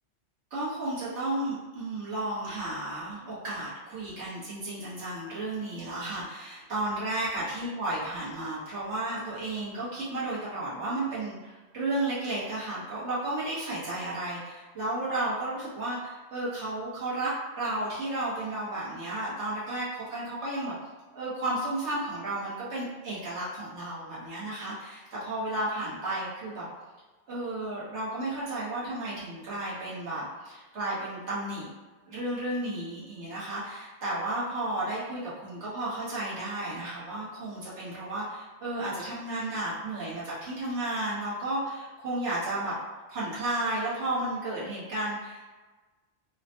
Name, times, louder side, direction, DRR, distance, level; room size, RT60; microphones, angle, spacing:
voice 1, 0.5-20.7 21.1-26.7 27.3-31.7 32.1-42.7 43.1-45.5, right 1 dB, 85° right, -9 dB, 1.5 m, -33 dB
4.7 x 2.1 x 2.8 m, 1.3 s
omnidirectional pair, 1.1 m